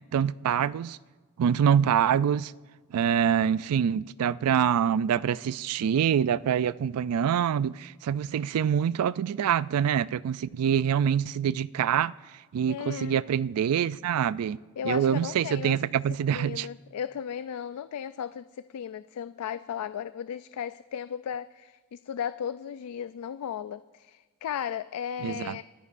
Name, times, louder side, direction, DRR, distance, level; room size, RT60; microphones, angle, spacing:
voice 1, 0.1-1.0 1.4-2.5 2.9-12.1 12.5-14.6 14.8-16.7 25.2-25.6, right 8 dB, 85° right, 0.3 m, -25 dB
voice 2, 12.7-13.2 14.8-15.8 16.3-25.6, left 8 dB, 85° left, 0.3 m, -35 dB
24.0 x 13.5 x 2.5 m
head